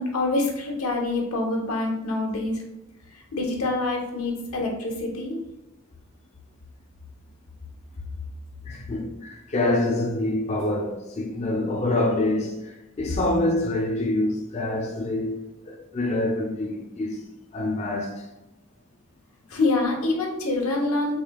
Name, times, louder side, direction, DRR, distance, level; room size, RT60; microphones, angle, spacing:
voice 1, 0.0-2.6 3.1-5.4 19.5-21.2, left 2 dB, 90° left, 1.0 m, -26 dB
voice 2, 8.6-17.2 17.5-18.3, left 2 dB, 30° left, 0.3 m, -26 dB
4.8 x 2.7 x 2.3 m
head